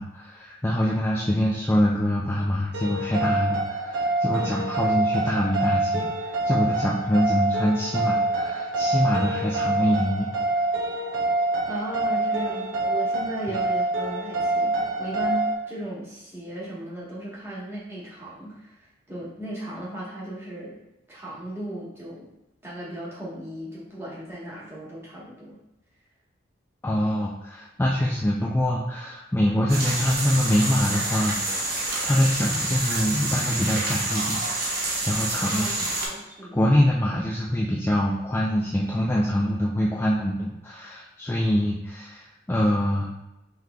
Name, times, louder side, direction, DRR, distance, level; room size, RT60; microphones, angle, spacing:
voice 1, 0.0-10.3 13.5-13.6 26.8-34.4 35.1-35.8 36.5-43.1, equal, 10° left, -4 dB, 0.3 m, -24 dB
sound 1, 2.7-15.5, right 2 dB, 85° right, 0.8 m, -26 dB
voice 2, 4.4-4.7 11.6-20.8 21.1-22.3 22.6-25.6 35.5-35.7 36.1-36.6, right 1 dB, 15° right, -7 dB, 1.2 m, -36 dB
sound 2, 29.7-36.1, right 2 dB, 50° right, 1.0 m, -28 dB
5.6 x 3.2 x 2.3 m, 0.93 s
head